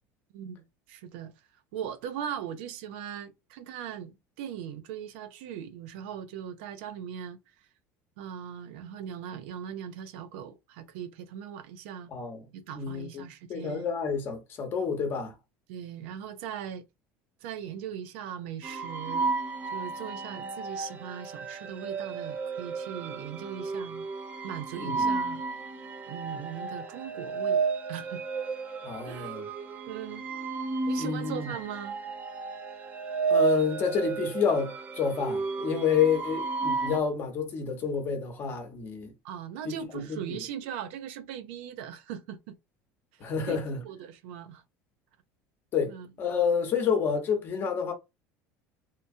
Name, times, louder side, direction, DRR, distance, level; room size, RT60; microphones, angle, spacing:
voice 1, 0.3-1.3 1.7-7.4 8.2-12.1 12.5-13.9 15.7-16.8 17.4-19.3 19.7-24.1 24.4-25.4 26.1-27.6 27.9-28.2 29.0-29.3 29.9-30.3 30.9-32.0 39.2-42.6 43.1-44.6 45.9-46.1, right 9 dB, 85° right, 0.5 m, -39 dB
voice 2, 12.1-12.4 12.8-15.3 24.8-25.1 28.8-29.4 31.0-31.5 33.3-39.1 39.6-40.4 43.2-43.8 45.7-47.9, left 6 dB, 35° left, 0.9 m, -29 dB
sound 1, 18.6-37.0, right 4 dB, 30° right, 0.5 m, -32 dB
2.8 x 2.2 x 2.6 m
cardioid pair, 140°, 6 cm